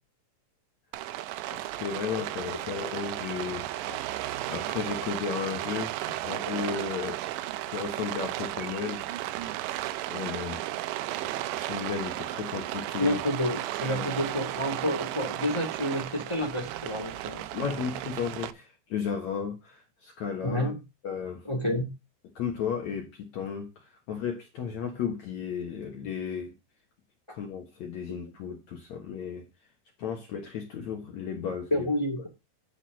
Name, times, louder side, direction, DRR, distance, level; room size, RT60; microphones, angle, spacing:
Rain, 0.9-18.5, right 15 dB, 80° right, 2.8 m, -34 dB
voice 1, 1.5-4.0 4.5-5.9 6.2-7.2 7.7-9.4 10.1-10.6 11.1-13.2 13.9-14.2 17.5-20.7 21.0-21.4 22.3-23.7 24.1-26.5 27.3-29.4 30.0-31.9, left 7 dB, 75° left, 1.6 m, -34 dB
voice 2, 13.0-17.7 20.4-20.8 21.4-21.9 31.7-32.3, equal, 35° left, 0.4 m, -29 dB
11.0 x 4.5 x 6.1 m
omnidirectional pair, 5.4 m